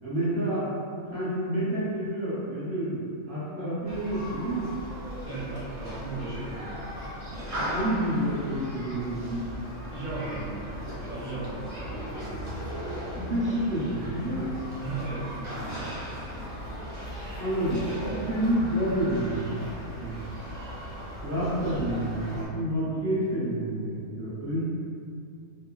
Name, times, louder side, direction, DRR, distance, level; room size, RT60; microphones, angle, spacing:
voice 1, 0.0-0.7 1.1-4.7 7.7-9.4 13.1-14.5 17.4-19.7 20.0-20.3 21.2-24.6, right 1 dB, 35° right, -12 dB, 1.0 m, -29 dB
Human group actions, 3.8-22.5, equal, 65° right, 0.3 m, -37 dB
voice 2, 5.2-6.7 9.9-12.5 14.8-15.9, right 2 dB, 85° right, -9 dB, 1.2 m, -36 dB
3.0 x 2.1 x 2.3 m, 2.3 s
omnidirectional pair, 1.5 m